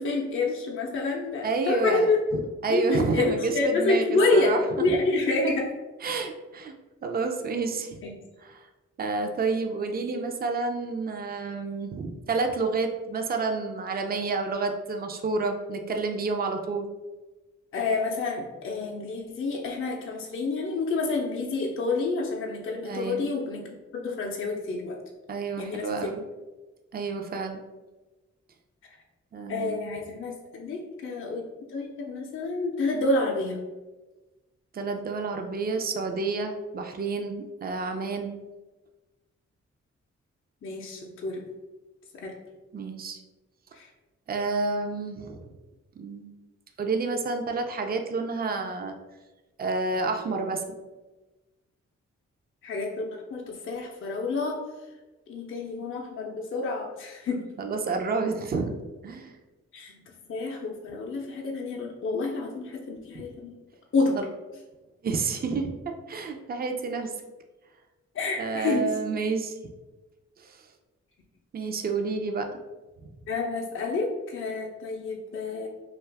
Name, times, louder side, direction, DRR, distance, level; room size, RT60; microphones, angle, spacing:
voice 1, 0.0-2.2 2.7-5.7 8.0-8.1 17.7-25.0 25.6-26.1 29.5-31.4 31.7-33.6 40.6-41.4 42.1-42.3 43.7-43.9 52.6-54.6 55.3-57.5 59.7-63.5 63.9-64.2 68.1-68.9 73.3-75.7, left 3 dB, 45° left, 0 dB, 0.5 m, -28 dB
voice 2, 1.4-4.0 4.3-4.6 4.9-5.0 6.0-6.7 7.0-8.0 8.4-8.7 9.0-16.9 22.8-23.3 25.3-26.2 26.9-27.6 29.3-29.9 34.7-38.4 42.7-43.2 44.3-45.5 46.0-46.3 46.8-49.0 49.6-50.6 57.6-58.7 59.0-59.3 63.1-63.2 64.2-64.3 65.0-67.1 68.4-69.6 70.4-70.6 71.5-72.5, right 4 dB, 30° right, 4 dB, 0.4 m, -29 dB
2.5 x 2.3 x 3.3 m, 1.2 s
cardioid pair, 45°, 29 cm